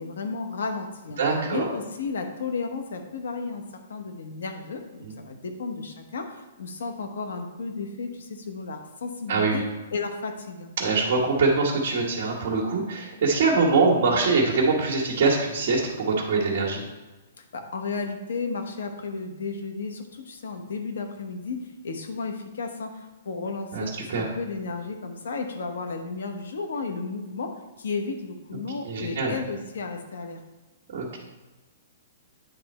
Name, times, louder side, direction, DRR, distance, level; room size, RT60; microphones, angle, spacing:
voice 1, 0.0-9.6 9.9-10.7 17.4-30.4, left 4 dB, 80° left, 5 dB, 1.0 m, -33 dB
voice 2, 1.2-1.7 5.0-5.1 9.3-9.6 10.8-16.8 23.7-24.2 28.8-29.3 30.9-31.2, right 4 dB, 50° right, -5 dB, 1.3 m, -23 dB
9.3 x 3.4 x 4.2 m, 1.2 s
hypercardioid pair, 165°, 0 cm